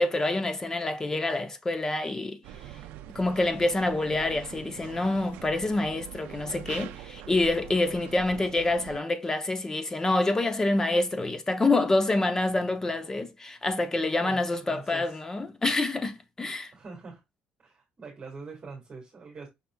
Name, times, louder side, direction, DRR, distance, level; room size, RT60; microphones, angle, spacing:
voice 1, 0.0-2.4 3.1-16.7, left 2 dB, 20° left, 0.6 m, -27 dB
sound 1, 2.4-9.0, right 12 dB, 90° right, 0.4 m, -44 dB
voice 2, 14.2-15.2 16.7-17.2 17.6-19.5, right 4 dB, 30° right, 1.6 m, -43 dB
5.6 x 3.9 x 2.2 m
cardioid pair, 125°, 3 cm